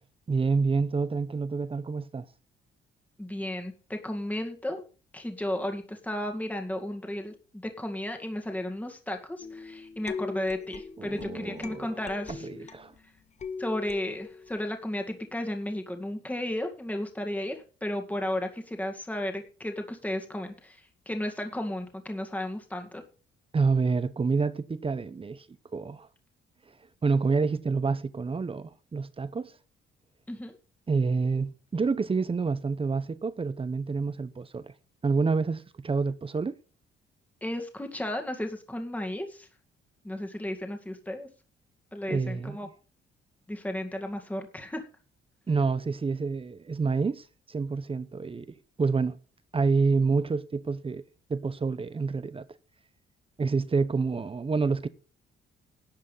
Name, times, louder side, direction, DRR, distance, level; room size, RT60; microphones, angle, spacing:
voice 1, 0.3-2.3 11.0-11.9 12.3-12.9 23.5-25.5 25.7-26.1 27.0-29.5 30.9-34.7 35.0-36.5 42.1-42.6 45.5-48.5 48.8-49.2 49.5-51.0 51.3-52.5 53.4-54.9, right 4 dB, 30° right, 0.9 m, -28 dB
voice 2, 3.2-4.8 5.1-12.5 13.6-17.6 17.8-23.0 30.3-30.5 37.4-39.5 40.0-41.3 41.9-42.7 43.5-44.9, left 1 dB, 5° left, 2.1 m, -34 dB
sound 1, 9.4-13.0 13.4-14.6, left 5 dB, 35° left, 1.0 m, -40 dB
12.0 x 7.4 x 5.6 m
cardioid pair, 90°, 20 cm